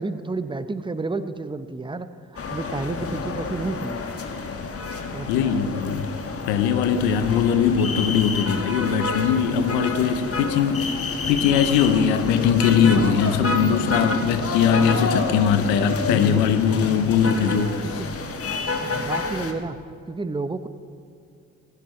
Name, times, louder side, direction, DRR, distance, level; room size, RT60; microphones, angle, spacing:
voice 1, 0.0-2.1 2.3-4.0 5.1-5.9 17.4-18.1 18.7-19.8 20.1-20.7, right 3 dB, 15° right, 12 dB, 0.8 m, -31 dB
sound 1, 2.4-19.5, left 3 dB, 45° left, 1.5 m, -29 dB
voice 2, 5.3-6.1 6.5-11.0 11.3-17.8, left 7 dB, 90° left, 9 dB, 0.7 m, -21 dB
15.5 x 15.5 x 3.2 m, 2.4 s
hypercardioid pair, 45°, 33 cm